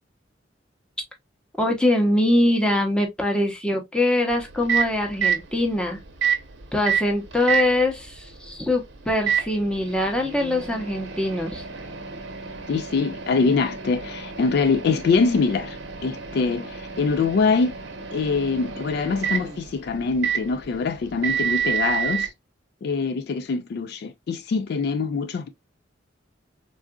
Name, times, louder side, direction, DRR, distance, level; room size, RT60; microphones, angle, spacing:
voice 1, 1.6-6.0 6.7-11.6, left 1 dB, 5° left, 0.7 m, -23 dB
Microwave oven, 4.3-22.3, right 7 dB, 80° right, 0.7 m, -30 dB
voice 2, 12.7-17.7 18.1-22.3 22.8-25.5, left 4 dB, 60° left, 0.3 m, -24 dB
3.7 x 2.4 x 2.2 m
head